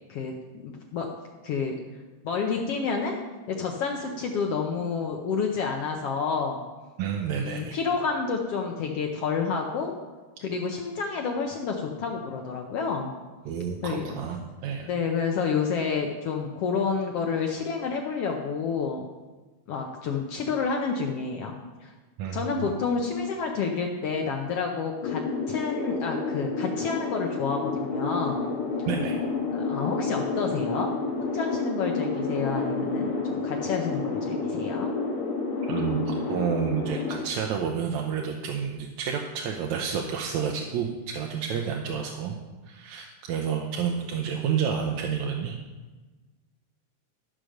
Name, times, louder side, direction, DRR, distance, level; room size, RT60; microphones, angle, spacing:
voice 1, 0.1-1.1 1.4-1.8 2.2-3.2 3.5-6.6 7.4-10.0 10.4-13.1 13.8-14.2 14.8-19.1 19.7-21.9 22.3-28.5 29.5-30.9 31.2-34.9, left 5 dB, 70° left, 2 dB, 1.4 m, -29 dB
voice 2, 7.0-7.8 13.5-14.4 14.6-14.9 22.2-22.7 28.9-29.2 35.7-42.4 42.7-45.6, right 7 dB, 75° right, 1 dB, 2.0 m, -30 dB
sound 1, 25.0-37.2, left 4 dB, 55° left, 2.0 m, -30 dB
12.5 x 5.0 x 6.4 m, 1.3 s
omnidirectional pair, 3.5 m